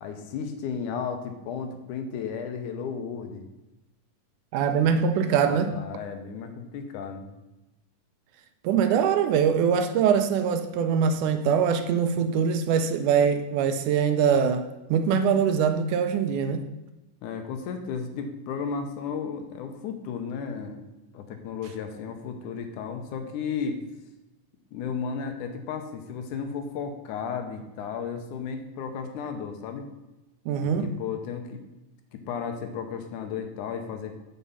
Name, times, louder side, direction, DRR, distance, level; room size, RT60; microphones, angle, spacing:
voice 1, 0.0-3.4 4.8-5.0 5.4-7.3 17.2-20.8 21.1-23.8 24.7-29.9 30.6-31.6 32.1-34.2, left 6 dB, 75° left, 2.2 m, -34 dB
voice 2, 4.5-5.7 8.6-14.6 14.9-16.7 30.5-30.9, right 7 dB, 80° right, 2.0 m, -23 dB
7.5 x 7.0 x 5.6 m
omnidirectional pair, 3.8 m